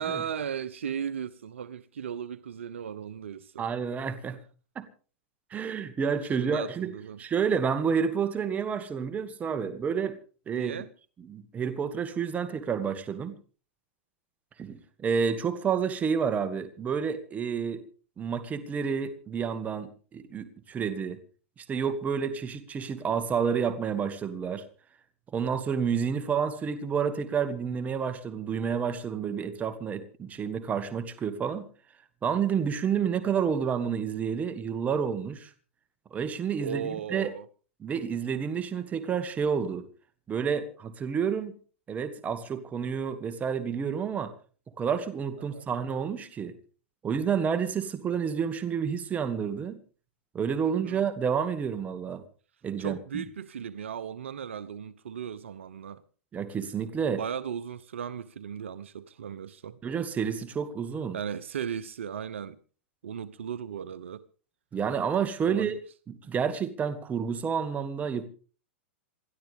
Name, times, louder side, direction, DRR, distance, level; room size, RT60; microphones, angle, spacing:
voice 1, 0.0-3.7 6.4-7.2 10.5-10.9 26.2-26.3 33.0-33.1 36.6-37.5 45.4-45.7 50.8-51.0 52.8-56.0 57.1-59.8 61.1-62.6 63.0-64.2 65.4-65.8, right 8 dB, 80° right, 0.9 m, -36 dB
voice 2, 3.6-4.4 4.8-4.9 5.5-10.2 10.5-10.7 11.3-13.3 14.6-17.8 18.2-21.2 21.7-24.6 25.3-31.7 32.2-35.5 36.1-37.3 37.8-39.9 40.3-41.5 41.9-44.3 44.8-46.6 47.0-49.8 50.3-52.2 52.6-53.2 56.3-57.2 59.8-61.2 64.7-65.8 66.1-68.3, right 7 dB, 20° right, 2.3 m, -29 dB
28.0 x 12.0 x 3.6 m
hypercardioid pair, 110°, 7 cm